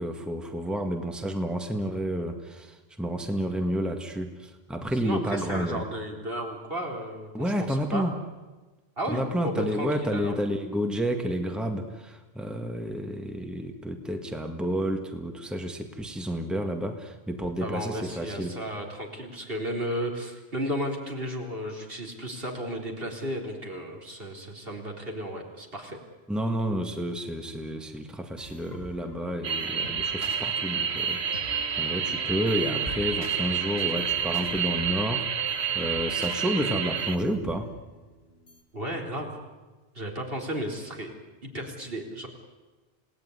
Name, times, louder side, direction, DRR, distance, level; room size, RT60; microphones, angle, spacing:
voice 1, 0.0-5.9 7.3-8.2 9.1-18.6 26.3-31.4 31.8-35.3 35.8-37.7, equal, ahead, 5 dB, 1.8 m, -30 dB
voice 2, 4.9-7.3 7.7-8.1 9.0-10.3 17.6-26.0 38.7-39.3 39.9-41.1 41.4-42.3, equal, 65° right, 1 dB, 4.2 m, -34 dB
sound 1, 28.4-38.6, left 1 dB, 75° left, 2.9 m, -46 dB
sound 2, 29.4-37.2, right 7 dB, 85° right, 1.5 m, -29 dB
28.5 x 18.0 x 9.8 m, 1.2 s
omnidirectional pair, 1.1 m